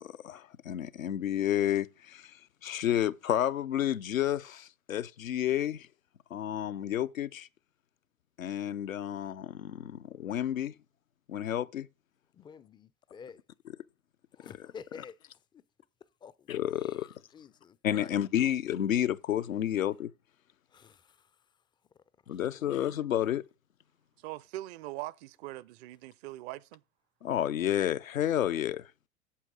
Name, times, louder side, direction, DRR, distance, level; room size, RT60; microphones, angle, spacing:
voice 1, 0.0-2.4 2.6-5.9 6.3-7.5 8.4-10.7 11.3-11.9 14.6-14.7 16.5-17.1 17.8-20.1 22.3-23.4 27.2-28.9, left 11 dB, 85° left, 0.6 m, -30 dB
voice 2, 12.3-13.4 14.4-15.2 16.2-16.5 16.8-17.1 17.3-18.1 20.7-21.3 22.3-22.6, left 6 dB, 10° left, 0.3 m, -50 dB
voice 3, 24.2-26.8, right 16 dB, 50° right, 0.6 m, -42 dB
8.4 x 7.4 x 3.7 m
figure-of-eight pair, 80°, 40 cm